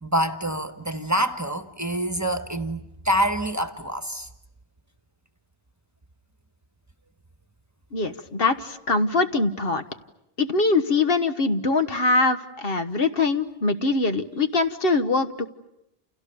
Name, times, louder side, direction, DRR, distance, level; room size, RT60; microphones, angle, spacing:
voice 1, 0.0-4.3, right 1 dB, 15° right, 1.3 m, -26 dB
voice 2, 7.9-9.8 10.4-15.5, left 3 dB, 65° left, 1.4 m, -23 dB
29.5 x 29.0 x 6.9 m
omnidirectional pair, 1.1 m